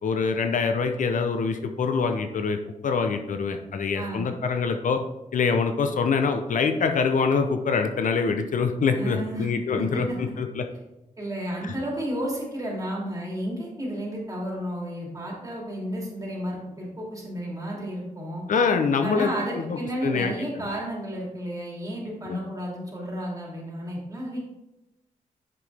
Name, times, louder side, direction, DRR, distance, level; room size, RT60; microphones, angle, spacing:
voice 1, 0.0-2.6 2.8-5.0 5.3-10.6 11.6-11.7 18.5-20.3 22.3-22.4, left 5 dB, 70° left, 6 dB, 0.7 m, -25 dB
voice 2, 3.9-4.3 8.9-9.5 9.7-10.2 11.2-18.4 19.0-24.4, equal, 25° right, -3 dB, 2.8 m, -32 dB
7.6 x 6.1 x 3.4 m, 0.95 s
cardioid pair, 90°, 14 cm